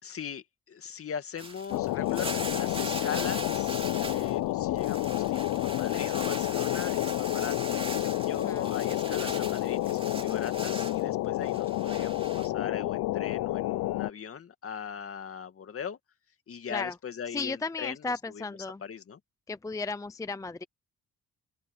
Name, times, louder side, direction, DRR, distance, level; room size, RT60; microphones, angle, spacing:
voice 1, 0.0-7.7 8.0-16.0 16.5-18.5 18.8-19.2, left 7 dB, 50° left, 2.4 m, -40 dB
sound 1, 1.4-4.4 4.7-11.0 11.5-12.5, right 3 dB, 20° right, 2.9 m, -41 dB
sound 2, 1.7-14.1, left 16 dB, 80° left, 0.7 m, -30 dB
voice 2, 8.3-8.6 16.7-16.9 17.3-18.8 19.5-20.6, left 3 dB, 10° left, 0.5 m, -35 dB
open air
cardioid pair, 90°, 30 cm